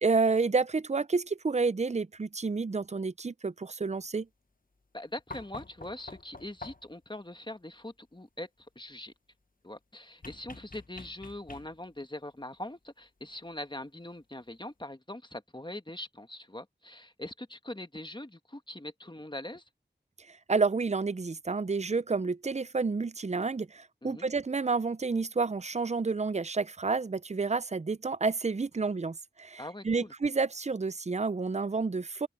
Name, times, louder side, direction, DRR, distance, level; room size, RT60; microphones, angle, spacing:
voice 1, 0.0-4.3 20.5-32.3, right 4 dB, 40° right, 0.5 m, -30 dB
voice 2, 4.9-9.1 9.6-19.7 24.0-24.3 29.6-30.1, left 1 dB, 25° left, 1.3 m, -42 dB
sound 1, 5.3-7.1 10.2-12.0 13.5-13.6, left 3 dB, 50° left, 1.0 m, -47 dB
open air
wide cardioid pair, 50°, 18 cm